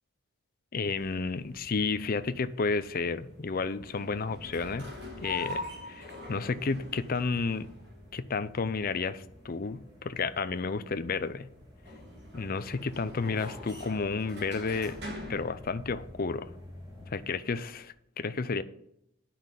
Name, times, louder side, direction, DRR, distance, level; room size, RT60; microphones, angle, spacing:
voice 1, 0.7-4.9 5.2-7.7 8.1-11.5 12.3-15.0 15.3-16.5 17.1-18.6, left 4 dB, 40° left, 13 dB, 0.5 m, -31 dB
sound 1, 0.8-17.9, left 2 dB, 50° right, 3.1 m, -45 dB
sound 2, 0.9-17.2, left 1 dB, 15° right, 3.6 m, -53 dB
9.8 x 5.8 x 5.2 m, 0.78 s
head